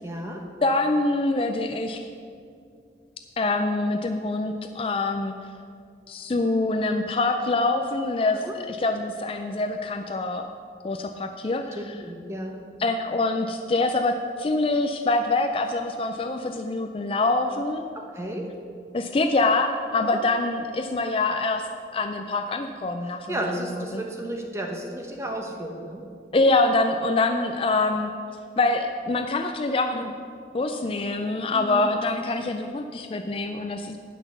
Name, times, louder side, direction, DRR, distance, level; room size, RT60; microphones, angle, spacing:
voice 1, 0.0-0.4 8.3-8.6 11.7-12.6 17.9-18.5 20.0-20.2 23.3-26.0 31.5-31.9, right 1 dB, 15° right, 1 dB, 1.0 m, -33 dB
voice 2, 0.6-2.1 3.4-5.3 6.1-10.5 10.8-11.8 12.8-17.9 18.9-21.7 21.9-23.4 23.7-24.0 26.3-28.1 28.6-30.1 30.5-34.0, left 2 dB, 30° left, 6 dB, 0.3 m, -25 dB
9.2 x 5.9 x 6.9 m, 2.3 s
head